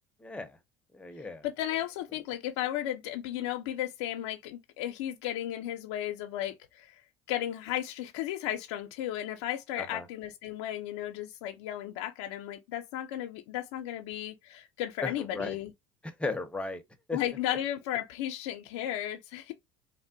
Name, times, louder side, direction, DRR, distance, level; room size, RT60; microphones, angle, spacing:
voice 1, 0.2-0.6 0.9-1.4 9.8-10.1 15.0-15.5 16.2-16.8 17.1-17.2, left 3 dB, 10° left, 0.7 m, -35 dB
voice 2, 1.4-7.0 7.3-15.7 17.1-19.5, left 12 dB, 90° left, 0.5 m, -34 dB
3.3 x 2.1 x 2.5 m
supercardioid pair, 110°, 14 cm